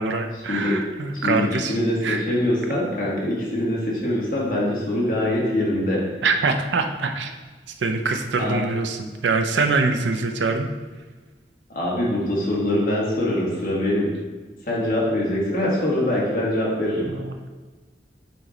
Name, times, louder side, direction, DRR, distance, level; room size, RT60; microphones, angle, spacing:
voice 1, 0.0-1.8 2.0-2.2 6.2-7.3 7.8-10.7 14.7-14.8 17.1-17.5, right 4 dB, 85° right, 6 dB, 0.5 m, -24 dB
voice 2, 1.2-6.0 8.4-8.6 11.7-14.1 14.7-17.1, left 1 dB, 50° left, -5 dB, 1.6 m, -23 dB
7.7 x 3.1 x 3.8 m, 1.3 s
head